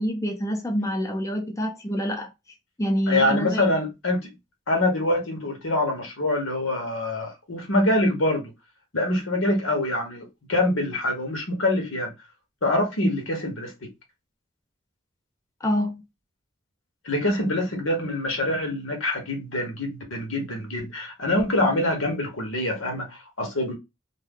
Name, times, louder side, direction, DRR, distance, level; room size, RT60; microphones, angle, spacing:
voice 1, 0.0-2.3 2.8-3.6 15.6-16.0, equal, 15° left, 0.5 m, -26 dB
voice 2, 3.1-4.3 4.7-8.5 8.9-12.1 12.6-13.9 17.0-23.7, left 1 dB, 85° left, 1.2 m, -25 dB
2.7 x 2.2 x 3.5 m
head